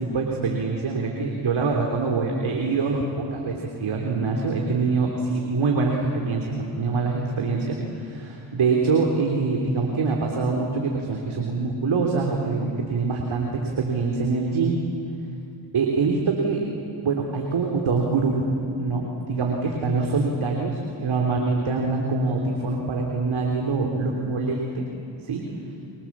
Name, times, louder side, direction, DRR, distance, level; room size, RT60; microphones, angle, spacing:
voice 1, 0.0-14.8 15.7-16.6 17.0-18.3 18.8-24.9 25.2-25.4, right 4 dB, 75° right, 0 dB, 3.4 m, -24 dB
29.5 x 24.5 x 7.4 m, 2.7 s
supercardioid pair, 45°, 48 cm